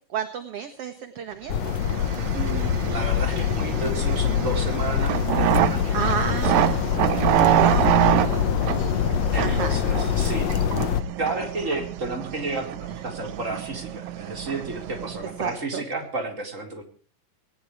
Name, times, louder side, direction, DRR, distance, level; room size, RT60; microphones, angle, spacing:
voice 1, 0.1-1.8 5.5-5.6 5.9-6.8 7.5-9.8 15.4-15.8, right 8 dB, 50° right, 8 dB, 2.2 m, -31 dB
sound 1, 1.5-11.0, left 9 dB, 65° left, 1.9 m, -24 dB
sound 2, 1.6-15.5, right 13 dB, 85° right, 2.6 m, -27 dB
voice 2, 2.2-6.8 9.3-10.6 11.2-16.8, right 2 dB, 20° right, 3 dB, 4.4 m, -32 dB
20.0 x 19.5 x 3.2 m, 0.41 s
omnidirectional pair, 3.9 m